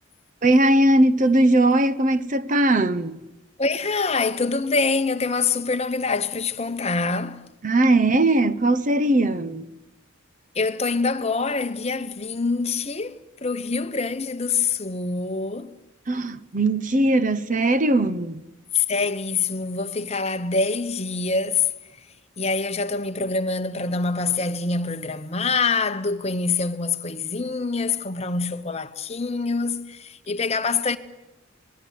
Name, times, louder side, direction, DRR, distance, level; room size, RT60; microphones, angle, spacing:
voice 1, 0.4-3.2 7.6-9.7 16.1-18.4, right 1 dB, 40° right, 0.9 m, -19 dB
voice 2, 3.6-7.4 10.5-15.7 18.7-21.7 22.4-31.0, left 4 dB, 30° left, 1.0 m, -25 dB
26.0 x 20.5 x 9.3 m
head